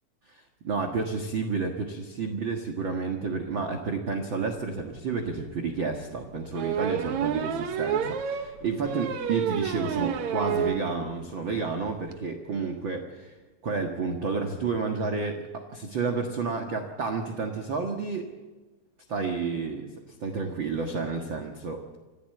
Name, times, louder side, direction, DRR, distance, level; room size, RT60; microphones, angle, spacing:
voice 1, 0.3-13.3 13.6-18.3 19.1-22.0, right 4 dB, 45° right, 3 dB, 1.8 m, -31 dB
sound 1, 4.8-4.9 5.3-5.4 6.5-10.8 11.2-11.3 11.6-11.7 11.9-12.1, right 8 dB, 60° right, 2.3 m, -29 dB
26.0 x 15.5 x 7.9 m, 1.2 s
omnidirectional pair, 4.1 m